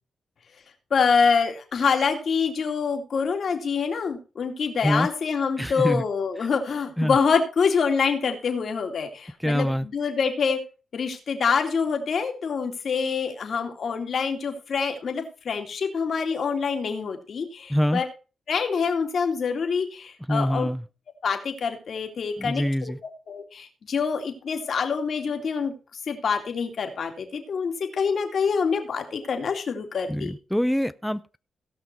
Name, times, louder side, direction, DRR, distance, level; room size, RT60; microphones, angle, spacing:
voice 1, 0.9-10.6 10.9-18.1 18.5-20.7 21.2-22.9 23.3-30.3, left 5 dB, 65° left, 2.4 m, -26 dB
voice 2, 5.6-6.0 7.0-7.2 9.4-9.9 17.7-18.0 20.3-20.8 22.4-23.0 30.1-31.4, equal, ahead, 0.6 m, -25 dB
17.0 x 5.9 x 4.5 m
supercardioid pair, 55°, 0 cm